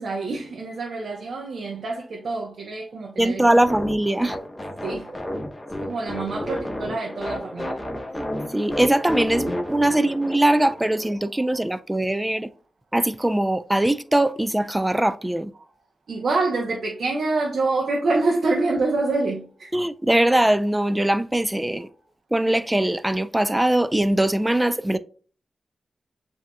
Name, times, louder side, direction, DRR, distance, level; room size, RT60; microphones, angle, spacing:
voice 1, 0.0-3.6 4.8-5.3 5.8-7.7 16.1-19.7, right 3 dB, 80° right, 0.7 m, -26 dB
voice 2, 3.2-4.4 8.1-12.5 12.9-15.5 19.7-21.9 22.3-25.0, right 1 dB, 15° right, 0.4 m, -21 dB
sound 1, 3.6-11.1, left 1 dB, 20° left, 1.1 m, -31 dB
7.4 x 2.8 x 2.2 m
cardioid pair, 55°, 0 cm